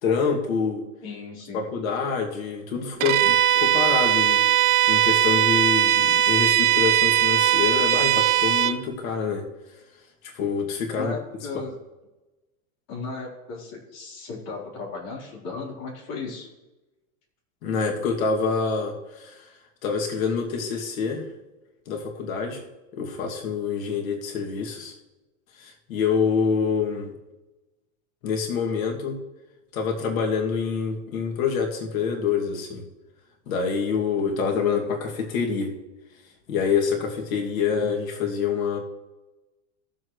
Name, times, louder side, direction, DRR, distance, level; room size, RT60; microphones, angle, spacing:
voice 1, 0.0-0.8 1.5-4.4 4.9-9.4 10.3-11.1 17.6-19.5 19.8-21.3 21.9-22.6 22.9-24.9 25.6-27.1 28.2-29.2 29.7-32.8 33.5-35.7 36.5-38.8, left 5 dB, 80° left, 1 dB, 2.5 m, -26 dB
voice 2, 1.0-1.6 11.0-11.7 12.9-16.5, left 4 dB, 40° left, -4 dB, 4.1 m, -35 dB
Bowed string instrument, 3.0-8.8, right 11 dB, 85° right, 0.9 m, -20 dB
18.0 x 7.5 x 3.2 m, 1.1 s
supercardioid pair, 160°, 41 cm